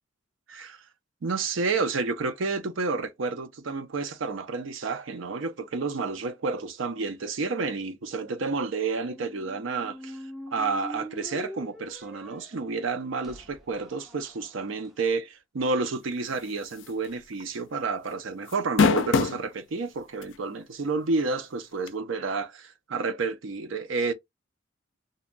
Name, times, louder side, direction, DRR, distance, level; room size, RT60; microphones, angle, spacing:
voice 1, 0.5-0.8 1.2-10.2 10.5-24.1, right 4 dB, 75° right, 0.5 m, -30 dB
sound 1, 9.0-14.9, left 1 dB, ahead, 0.5 m, -43 dB
sound 2, 16.8-17.1 17.4-17.5 18.5-19.4 20.2-20.3 21.9-22.0, left 5 dB, 65° left, 0.4 m, -21 dB
2.7 x 2.2 x 2.4 m
head